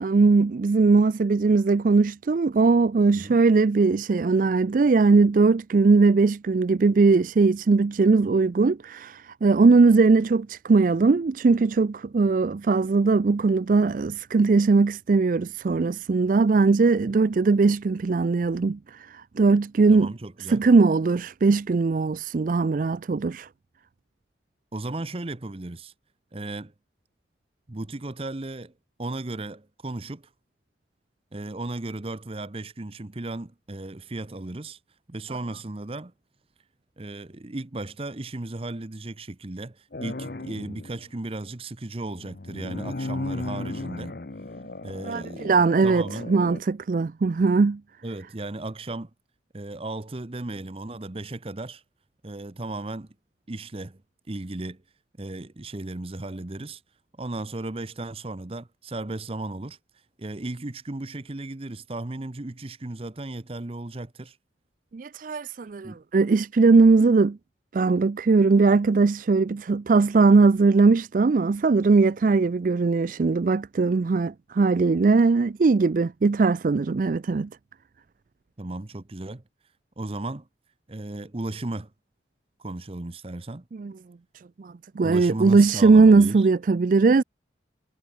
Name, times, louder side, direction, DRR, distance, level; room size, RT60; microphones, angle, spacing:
voice 1, 0.0-18.8 19.4-20.1 20.5-23.5 45.0-47.8 64.9-67.4 67.7-77.5 83.8-83.9 84.6-87.2, right 4 dB, 50° right, 0.4 m, -20 dB
voice 2, 19.9-20.6 24.7-25.9 26.3-26.7 27.7-28.7 29.0-30.3 31.3-34.8 35.1-36.1 37.0-44.1 44.8-46.3 48.0-49.1 49.5-51.8 52.2-53.1 53.5-54.0 54.3-54.8 55.2-56.8 57.2-59.8 60.2-64.4 65.8-66.0 78.6-79.4 80.0-80.5 80.9-81.9 82.6-83.7 85.0-86.5, right 2 dB, 30° right, 0.8 m, -35 dB
sound 1, 39.9-41.0 42.2-46.6, left 2 dB, 55° left, 0.9 m, -35 dB
head